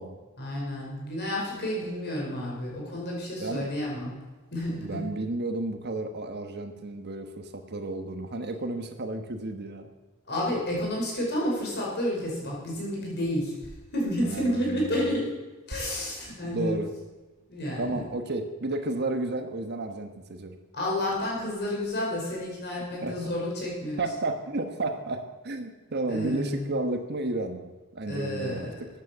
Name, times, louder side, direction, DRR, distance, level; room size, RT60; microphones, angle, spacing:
voice 1, 0.4-4.2 4.5-5.0 10.3-13.5 13.9-15.3 15.7-16.7 17.5-18.0 20.7-24.1 26.1-26.7 28.1-28.8, left 1 dB, 50° left, -3 dB, 5.4 m, -30 dB
voice 2, 4.8-9.9 14.2-15.0 16.4-16.9 17.8-20.5 23.0-23.2 24.0-28.9, right 2 dB, 50° right, 6 dB, 1.3 m, -32 dB
sound 1, 15.7-19.4 19.6-19.8, equal, 75° right, 2.6 m, -48 dB
14.0 x 9.4 x 6.9 m, 1.3 s
head